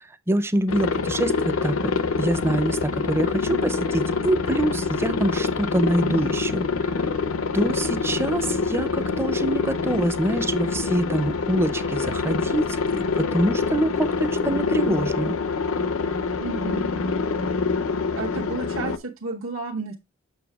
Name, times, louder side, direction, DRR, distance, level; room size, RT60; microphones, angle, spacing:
voice 1, 0.0-1.9 2.2-7.0 7.5-15.4, right 1 dB, 10° right, 0.5 m, -25 dB
Aircraft, 0.7-19.0, left 4 dB, 85° left, 0.6 m, -25 dB
voice 2, 16.4-16.9 18.2-20.0, right 3 dB, 75° right, 1.0 m, -32 dB
6.9 x 6.5 x 2.3 m
head